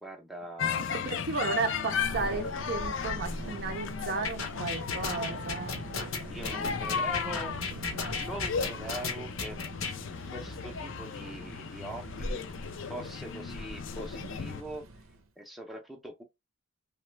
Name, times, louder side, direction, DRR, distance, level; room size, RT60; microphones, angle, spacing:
voice 1, 0.0-0.9 6.3-7.5 8.1-9.6 10.3-12.4 12.9-14.8 15.4-16.2, right 1 dB, ahead, 0.6 m, -42 dB
sound 1, 0.6-14.6, left 6 dB, 65° left, 0.4 m, -36 dB
voice 2, 0.8-5.8 6.6-7.0, right 3 dB, 50° right, 0.5 m, -34 dB
Thunder, 1.6-15.3, right 1 dB, 85° right, 0.7 m, -42 dB
sound 2, 4.2-9.9, left 5 dB, 80° left, 0.8 m, -34 dB
3.0 x 2.1 x 3.2 m
head